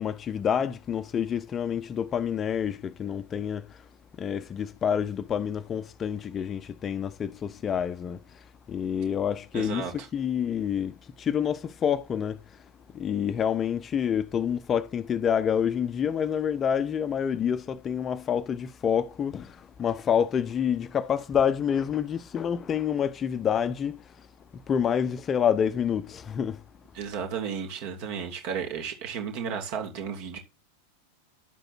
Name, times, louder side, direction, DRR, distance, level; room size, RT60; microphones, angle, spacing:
voice 1, 0.0-3.6 4.2-8.2 8.7-12.4 12.9-19.5 19.8-24.0 24.7-26.6, left 8 dB, 25° left, 0.7 m, -27 dB
voice 2, 9.5-10.1 26.9-30.4, right 7 dB, 45° right, 2.9 m, -33 dB
11.5 x 7.8 x 4.4 m
figure-of-eight pair, 90°, 0 cm